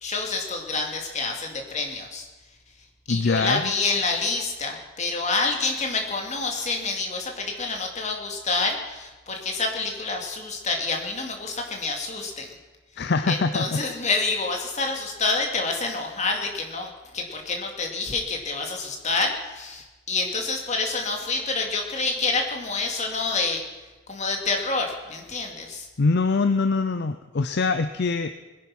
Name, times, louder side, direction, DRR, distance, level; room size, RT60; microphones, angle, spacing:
voice 1, 0.0-2.3 3.1-12.5 13.3-23.6 24.1-25.9, left 3 dB, 35° left, 2 dB, 2.3 m, -28 dB
voice 2, 3.1-3.7 13.0-13.8 26.0-28.3, left 4 dB, 55° left, 10 dB, 0.6 m, -23 dB
20.5 x 10.5 x 5.9 m, 1.2 s
head